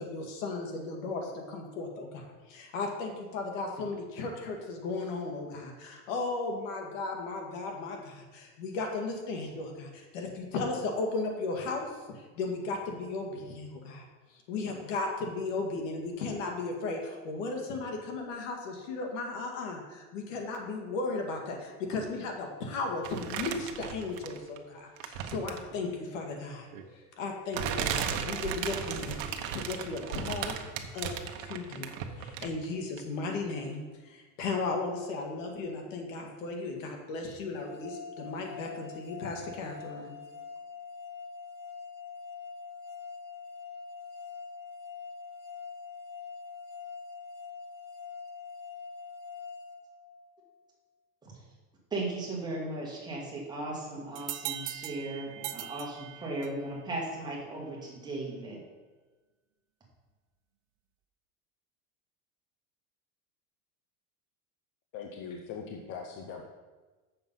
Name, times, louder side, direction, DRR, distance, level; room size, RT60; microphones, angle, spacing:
voice 1, 0.0-11.9 12.2-14.1 14.5-30.6 30.9-31.2 31.4-40.1, left 3 dB, 90° left, 2 dB, 2.0 m, -35 dB
sound 1, 23.0-24.6 25.0-25.7 26.7-26.8 27.5-32.6 33.0-33.1, right 8 dB, 85° right, 1.0 m, -35 dB
sound 2, 37.6-50.5, left 5 dB, 60° left, 1.8 m, -44 dB
voice 2, 51.9-58.6, right 2 dB, 10° right, -4 dB, 1.7 m, -37 dB
sound 3, 54.1-56.7, right 14 dB, 65° right, 0.7 m, -40 dB
voice 3, 64.9-66.5, left 6 dB, 30° left, 2 dB, 0.6 m, -41 dB
7.9 x 6.8 x 5.5 m, 1.3 s
cardioid pair, 175°, 37 cm